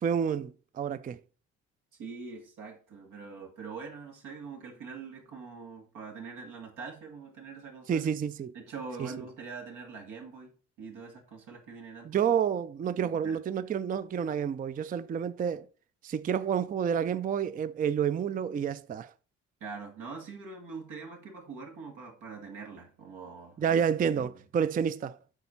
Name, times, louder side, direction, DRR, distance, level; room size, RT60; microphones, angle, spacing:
voice 1, 0.0-1.2 7.9-8.5 9.0-9.1 12.1-15.7 16.0-19.1 23.6-25.2, right 8 dB, 30° right, 0.4 m, -29 dB
voice 2, 2.0-8.1 8.5-10.5 10.8-12.1 12.8-13.4 19.6-23.8 24.1-24.3, right 5 dB, 90° right, 2.2 m, -43 dB
8.2 x 4.2 x 5.7 m
cardioid pair, 90°, 30 cm